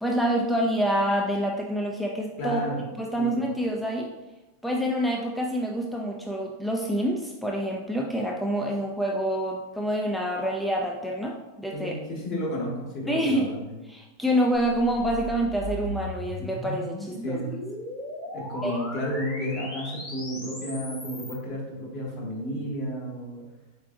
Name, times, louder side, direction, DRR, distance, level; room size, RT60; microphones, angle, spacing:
voice 1, 0.0-2.6 3.0-4.1 4.6-12.0 13.1-13.5 13.9-17.4 18.6-18.8, equal, ahead, -1 dB, 0.3 m, -27 dB
voice 2, 2.4-2.9 3.2-3.3 11.7-13.7 17.2-17.5 18.3-23.4, equal, 45° left, -3 dB, 1.5 m, -32 dB
sound 1, 14.5-21.4, equal, 30° left, 1.1 m, -37 dB
4.6 x 3.4 x 2.6 m, 1.1 s
supercardioid pair, 130°, 0 cm